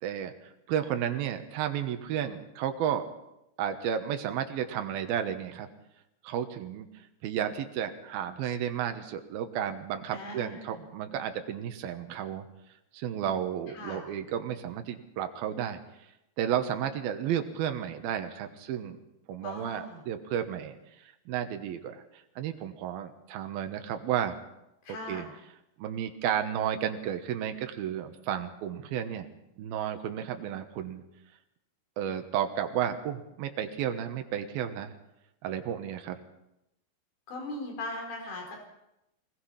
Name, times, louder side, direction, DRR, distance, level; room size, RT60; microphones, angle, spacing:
voice 1, 0.0-3.1 3.6-5.7 6.2-12.5 12.9-15.8 16.4-19.0 19.3-20.7 21.0-22.0 22.4-24.4 25.1-25.2 25.8-29.3 29.6-31.0 32.0-34.9 35.4-36.2, right 9 dB, 75° right, 6 dB, 3.1 m, -32 dB
voice 2, 10.1-10.8 13.7-14.0 19.4-20.0 24.8-25.3 37.3-38.6, left 2 dB, 70° left, 1 dB, 6.4 m, -39 dB
23.5 x 19.5 x 5.8 m, 0.87 s
omnidirectional pair, 4.4 m